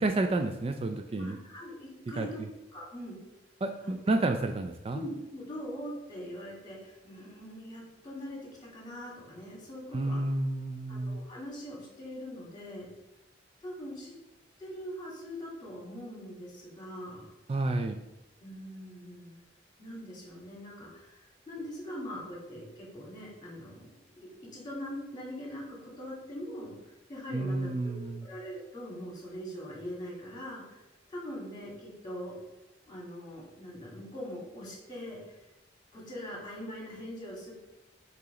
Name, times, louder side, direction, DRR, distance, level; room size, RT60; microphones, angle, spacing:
voice 1, 0.0-1.4 2.2-2.3 3.6-5.0 9.9-11.2 17.5-18.0 27.3-28.2, right 2 dB, 30° right, 6 dB, 0.3 m, -30 dB
voice 2, 1.2-2.4 2.7-3.2 3.8-4.0 4.9-10.2 10.9-12.9 13.6-14.1 14.6-17.3 18.4-19.4 19.8-27.9 28.2-30.8 31.1-32.3 32.9-35.4 35.9-37.5, equal, 25° left, -3 dB, 2.0 m, -42 dB
6.8 x 3.0 x 4.9 m, 0.95 s
head